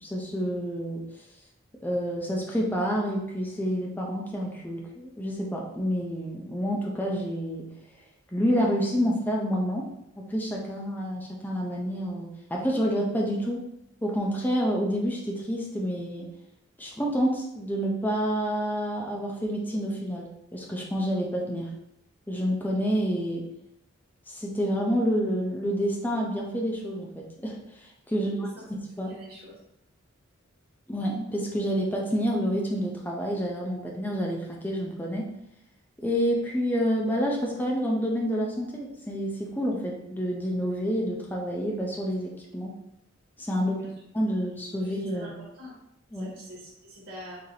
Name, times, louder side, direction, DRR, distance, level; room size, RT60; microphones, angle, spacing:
voice 1, 0.0-1.0 1.8-7.6 8.3-9.9 10.2-13.6 14.0-16.3 16.8-21.7 22.3-23.4 24.3-29.2 30.9-35.3 36.0-42.7 43.4-43.8 44.1-45.3 46.1-46.3, equal, 10° left, -2 dB, 0.5 m, -28 dB
voice 2, 28.1-28.6 29.0-29.5 43.6-43.9 44.8-45.7 46.1-47.4, equal, 60° right, -11 dB, 1.4 m, -45 dB
4.0 x 3.3 x 2.8 m, 0.82 s
head